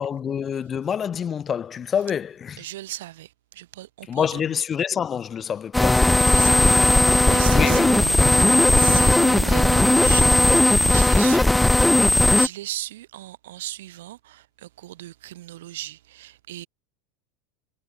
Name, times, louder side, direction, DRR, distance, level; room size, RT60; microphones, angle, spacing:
voice 1, 0.0-2.7 4.1-6.1 7.5-8.1, left 8 dB, 20° left, 0.9 m, -27 dB
voice 2, 2.6-4.3 6.3-7.9 8.8-9.7 9.9-10.4 10.7-12.0 12.3-16.7, right 15 dB, 90° right, 6.9 m, -36 dB
sound 1, 5.7-12.5, left 1 dB, 5° left, 0.5 m, -17 dB
sound 2, 7.2-11.4, right 27 dB, 60° right, 2.7 m, -34 dB
supercardioid pair, 160°, 0 cm